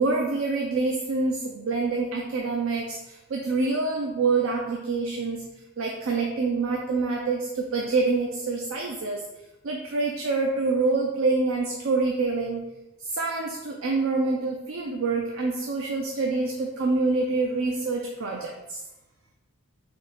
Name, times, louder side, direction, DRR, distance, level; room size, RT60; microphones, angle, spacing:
voice 1, 0.0-5.5 5.8-9.2 9.6-12.7 13.0-18.8, right 3 dB, 65° right, 1 dB, 0.4 m, -26 dB
3.5 x 2.7 x 4.1 m, 1.0 s
head